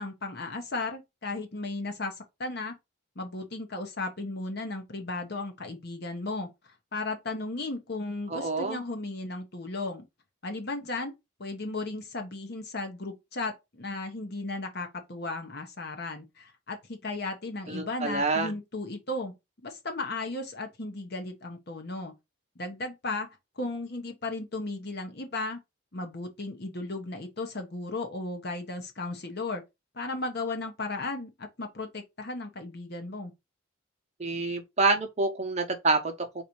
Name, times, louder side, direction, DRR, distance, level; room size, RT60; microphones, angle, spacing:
voice 1, 0.0-2.7 3.2-6.5 6.9-10.0 10.4-11.1 11.4-19.3 19.6-22.1 22.6-23.3 23.6-25.6 25.9-29.6 29.9-33.3, left 2 dB, 50° left, 1.0 m, -35 dB
voice 2, 8.3-8.8 17.7-18.5 34.2-36.4, right 3 dB, 30° right, 0.8 m, -27 dB
4.1 x 2.7 x 4.5 m
head